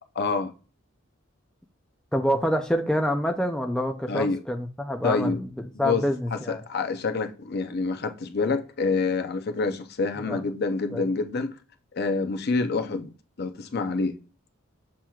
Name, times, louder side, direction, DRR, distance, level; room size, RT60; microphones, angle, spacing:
voice 1, 0.2-0.5 4.1-4.4 5.0-5.4 5.7-6.0 6.3-11.5 11.9-13.1 13.4-14.2, left 4 dB, 50° left, 0.5 m, -27 dB
voice 2, 2.1-5.5 5.8-6.6 10.3-10.4 10.9-11.0, equal, 5° left, 0.3 m, -26 dB
7.3 x 2.9 x 2.3 m
head